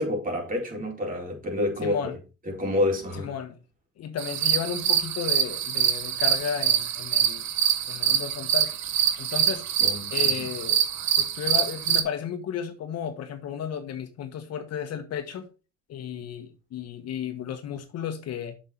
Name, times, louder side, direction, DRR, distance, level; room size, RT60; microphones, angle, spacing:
voice 1, 0.0-2.1 2.5-3.3 9.8-10.1, left 1 dB, 25° right, 4.4 m, -28 dB
voice 2, 1.8-2.1 3.2-3.6 4.0-7.5 7.9-8.7 9.2-9.6 10.1-10.8 11.2-15.5 15.9-18.5, left 8 dB, 55° left, 1.5 m, -33 dB
sound 1, 4.2-12.0, right 9 dB, 65° right, 1.6 m, -25 dB
7.4 x 6.7 x 4.4 m
cardioid pair, 115°, 30 cm